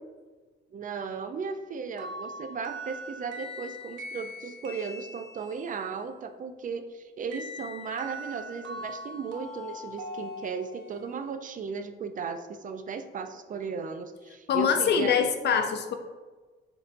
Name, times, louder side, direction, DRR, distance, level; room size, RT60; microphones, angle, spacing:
voice 1, 0.7-15.1, right 5 dB, 40° right, 8 dB, 0.4 m, -36 dB
sound 1, 2.0-5.7 7.3-11.1, equal, 75° right, 0.9 m, -41 dB
voice 2, 14.5-15.9, left 7 dB, 60° left, 7 dB, 0.5 m, -24 dB
7.1 x 2.7 x 2.5 m, 1.3 s
cardioid pair, 90°, 20 cm